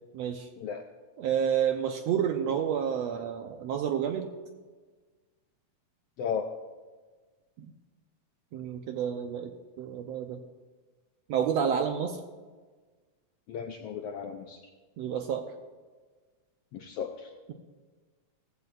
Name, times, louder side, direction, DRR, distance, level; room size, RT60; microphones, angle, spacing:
voice 1, 0.1-0.5 1.2-4.3 7.6-7.7 8.5-10.4 11.3-12.2 15.0-15.4, right 8 dB, 75° right, 5 dB, 1.6 m, -29 dB
voice 2, 6.2-6.5 13.5-14.6 16.7-17.3, left 7 dB, 80° left, 4 dB, 1.4 m, -35 dB
17.5 x 15.0 x 2.5 m, 1.4 s
omnidirectional pair, 3.5 m